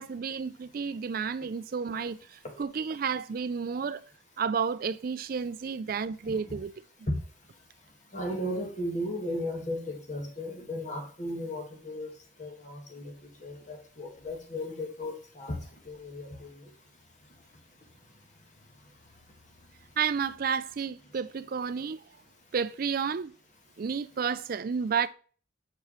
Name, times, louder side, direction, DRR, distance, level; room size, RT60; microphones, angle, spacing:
voice 1, 0.0-4.0 4.4-6.7 20.0-22.0 22.5-23.3 23.8-25.1, right 6 dB, 45° right, 0.4 m, -31 dB
voice 2, 8.1-12.1 12.4-13.1 13.4-15.6 15.8-16.5, left 1 dB, 35° left, 1.7 m, -35 dB
6.8 x 4.7 x 3.1 m
head